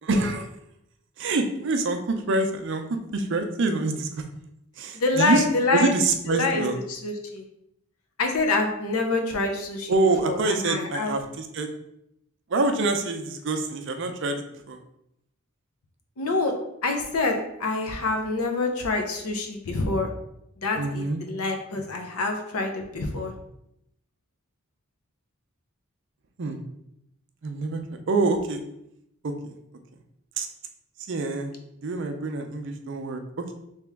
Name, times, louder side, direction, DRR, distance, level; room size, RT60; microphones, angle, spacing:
voice 1, 0.0-0.5 1.2-4.2 4.8-5.4 5.7-6.8 9.9-11.7 12.5-14.8 20.8-21.2 26.4-26.6 27.4-27.8 28.1-28.6 29.2-29.6 30.4-30.5 31.0-31.5 31.8-33.5, right 3 dB, 55° right, 5 dB, 0.5 m, -26 dB
voice 2, 4.9-5.9 6.3-7.4 8.2-9.9 10.2-11.1 16.2-16.5 16.8-20.1 20.6-23.3, left 3 dB, 80° left, 4 dB, 0.7 m, -26 dB
3.4 x 2.9 x 3.4 m, 0.79 s
head